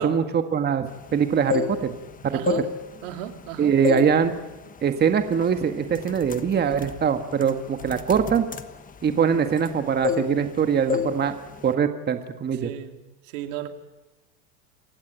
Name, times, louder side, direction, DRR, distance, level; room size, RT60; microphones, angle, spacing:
voice 1, 0.0-1.9 2.2-2.4 3.6-4.4 4.8-8.4 9.0-11.4 11.6-12.7, right 7 dB, 25° right, 7 dB, 1.7 m, -22 dB
sound 1, 1.3-2.0 2.4-3.5 3.8-4.2 4.6-4.8 5.4-5.6 5.9-9.7 10.0-10.6 10.9-11.2 11.5-11.7, left 8 dB, 20° left, 1.3 m, -29 dB
voice 2, 2.3-2.7 3.0-3.7 12.6-13.0 13.2-13.7, right 11 dB, 70° right, 6 dB, 2.7 m, -34 dB
27.5 x 15.5 x 9.0 m, 1.1 s
supercardioid pair, 115°, 40 cm